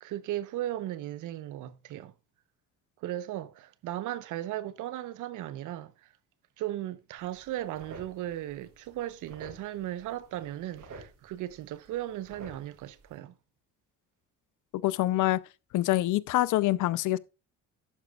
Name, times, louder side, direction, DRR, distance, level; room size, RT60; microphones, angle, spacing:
voice 1, 0.0-2.1 3.0-6.1 6.6-13.3, right 13 dB, 90° right, 0.9 m, -36 dB
sound 1, 7.2-13.2, right 3 dB, 70° right, 6.5 m, -51 dB
voice 2, 14.8-15.4 15.7-17.2, left 16 dB, 85° left, 0.6 m, -25 dB
12.0 x 9.2 x 2.4 m
cardioid pair, 90°, 30 cm